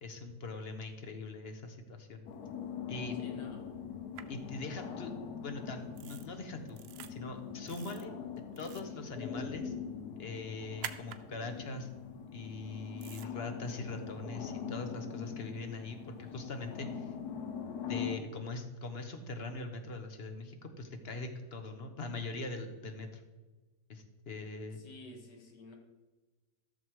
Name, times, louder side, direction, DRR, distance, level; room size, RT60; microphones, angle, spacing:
voice 1, 0.0-2.2 2.9-3.2 4.3-6.8 7.1-8.1 8.6-9.7 10.2-11.9 12.3-17.1 17.9-23.2 23.9-24.8, left 3 dB, 40° left, 6 dB, 1.1 m, -42 dB
sound 1, 2.3-18.2, left 7 dB, 70° left, 1.3 m, -42 dB
voice 2, 3.2-3.7 24.7-25.8, left 1 dB, 85° left, 2 dB, 2.3 m, -51 dB
sound 2, 4.1-4.2 6.0-6.3 6.7-7.1 7.7-8.0 8.5-8.9 10.8-11.2 13.0-13.3, right 10 dB, 85° right, 1.3 m, -45 dB
14.0 x 6.7 x 4.7 m, 1.2 s
omnidirectional pair, 1.8 m